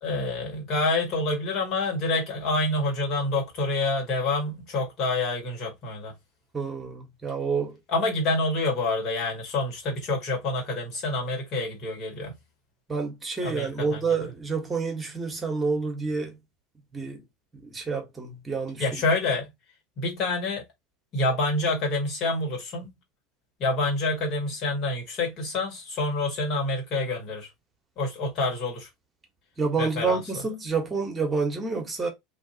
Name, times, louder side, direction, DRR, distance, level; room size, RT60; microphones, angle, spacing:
voice 1, 0.0-6.1 7.9-12.4 13.4-14.0 18.8-19.5 20.0-20.6 21.1-22.9 23.6-27.5 28.0-28.9 29.8-30.2, left 2 dB, 50° left, 1.9 m, -27 dB
voice 2, 6.5-7.8 12.9-16.4 16.9-17.2 17.5-18.9 29.6-32.1, right 4 dB, 20° right, 1.4 m, -28 dB
2.9 x 2.8 x 2.8 m
hypercardioid pair, 75°, 0 cm